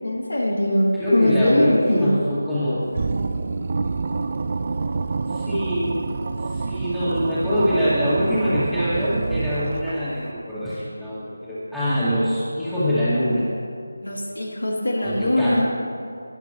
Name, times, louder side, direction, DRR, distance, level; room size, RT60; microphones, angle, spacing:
voice 1, 0.0-2.2 14.0-15.7, left 1 dB, 85° left, -1 dB, 2.6 m, -21 dB
voice 2, 1.0-2.9 5.3-6.0 6.4-13.5 15.0-15.7, equal, 5° left, -16 dB, 2.2 m, -24 dB
sound 1, 2.9-10.2, right 4 dB, 40° right, 0.4 m, -27 dB
18.5 x 8.9 x 3.0 m, 2.4 s
figure-of-eight pair, 165°, 0 cm